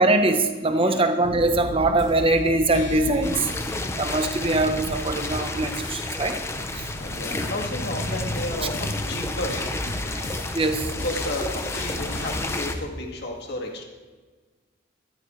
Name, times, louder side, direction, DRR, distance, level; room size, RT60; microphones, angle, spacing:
voice 1, 0.0-3.5 4.0-6.4 6.8-6.9 10.5-10.9, right 2 dB, 30° right, 7 dB, 0.9 m, -22 dB
voice 2, 0.8-1.1 7.0-9.6 11.0-13.8, left 1 dB, 55° left, 1 dB, 2.1 m, -32 dB
sound 1, 1.2-12.8, left 1 dB, 85° left, 3.6 m, -34 dB
sound 2, 3.2-12.7, left 2 dB, 15° left, 0.7 m, -32 dB
14.0 x 13.5 x 3.2 m, 1.4 s
head